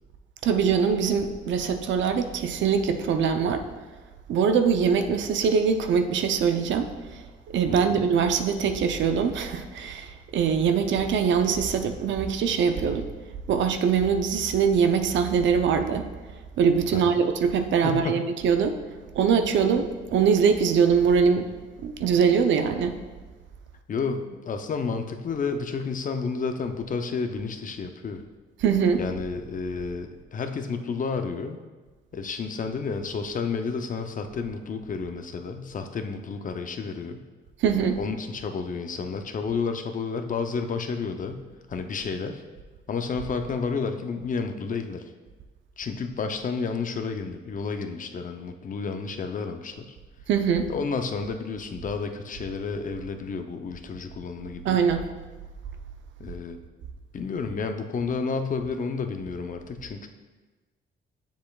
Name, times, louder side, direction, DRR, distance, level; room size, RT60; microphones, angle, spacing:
voice 1, 0.4-3.6 4.3-7.2 7.5-13.1 13.5-16.1 16.6-18.8 19.1-21.5 21.8-23.0 28.6-29.0 37.6-38.0 50.3-50.7 54.6-55.1, right 6 dB, 70° right, 7 dB, 0.6 m, -23 dB
voice 2, 7.6-8.0 16.9-17.2 17.8-18.2 23.9-28.2 29.0-31.6 32.1-37.2 37.9-41.4 41.7-42.4 42.9-45.1 45.8-49.9 50.7-54.8 56.2-56.6 57.1-60.1, left 5 dB, 40° left, 6 dB, 0.6 m, -31 dB
7.5 x 7.0 x 2.3 m, 1.3 s
cardioid pair, 90°, 20 cm